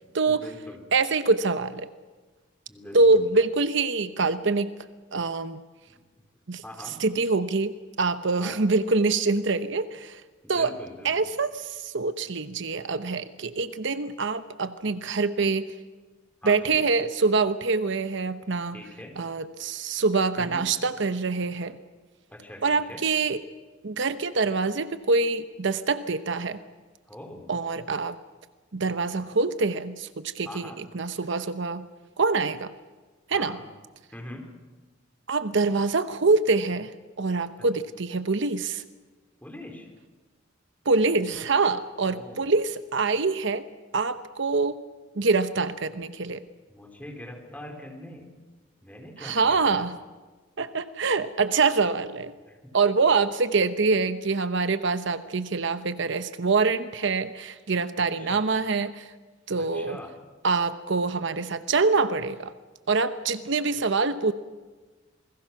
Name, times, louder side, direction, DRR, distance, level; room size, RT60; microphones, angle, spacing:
voice 1, 0.0-0.8 2.7-3.2 5.9-6.0 6.6-7.0 8.4-8.6 10.4-11.1 16.4-16.8 18.7-19.1 20.4-20.7 22.3-23.0 27.1-27.5 29.2-29.3 30.4-30.8 33.3-33.6 34.1-34.5 37.6-37.7 39.4-39.9 42.1-42.5 46.7-48.3 48.8-49.8 52.5-52.7 58.0-58.4 59.6-60.1, left 1 dB, 10° left, 2 dB, 4.1 m, -43 dB
voice 2, 0.9-1.9 2.9-4.7 5.1-5.6 6.5-6.6 7.0-10.2 10.5-10.7 11.0-15.7 16.4-18.8 19.2-21.8 22.6-23.4 23.8-26.6 27.5-28.2 28.7-31.9 32.2-32.7 33.3-33.6 35.3-38.8 40.9-43.6 43.9-44.8 45.1-46.4 49.2-50.0 50.6-52.3 52.7-59.1 59.5-60.0 60.4-62.5 62.9-64.3, right 4 dB, 65° right, 11 dB, 0.9 m, -25 dB
28.0 x 21.5 x 6.0 m, 1.3 s
head